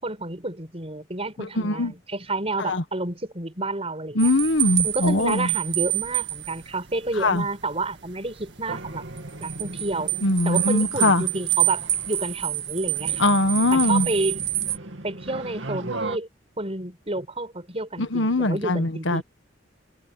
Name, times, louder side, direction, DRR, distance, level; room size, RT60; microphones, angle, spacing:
voice 1, 0.0-4.3 4.8-9.0 9.4-10.1 10.5-13.3 13.7-14.4 15.0-16.3 16.6-19.2, right 2 dB, 30° right, 5.4 m, -30 dB
voice 2, 1.4-1.9 2.7-2.8 4.1-5.5 7.2-7.4 10.2-11.2 13.2-14.1 18.0-19.2, left 2 dB, 80° left, 1.6 m, -21 dB
sound 1, 4.2-14.8, right 14 dB, 65° right, 2.1 m, -28 dB
sound 2, 8.7-16.2, right 2 dB, 90° right, 2.6 m, -37 dB
head